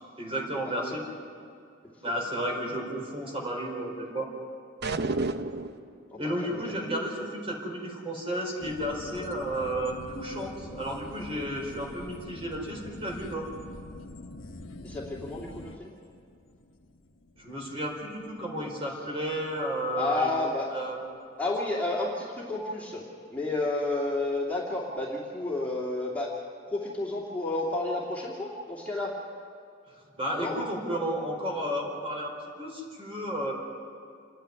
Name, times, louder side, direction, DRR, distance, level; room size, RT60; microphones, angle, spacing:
voice 1, 0.2-1.0 2.0-4.3 6.2-13.4 17.3-20.3 20.7-21.0 29.9-33.5, right 1 dB, 30° right, -1 dB, 4.5 m, -32 dB
sound 1, 4.8-5.9, right 3 dB, 55° right, 0.8 m, -30 dB
voice 2, 6.1-6.9 14.8-15.9 19.9-20.7 21.4-23.0 23.3-26.3 26.7-29.2 30.3-30.6, left 2 dB, 10° left, -5 dB, 2.4 m, -31 dB
sound 2, 8.6-19.5 19.8-19.9, left 2 dB, 85° left, 1.1 m, -45 dB
28.0 x 10.0 x 9.6 m, 2.4 s
head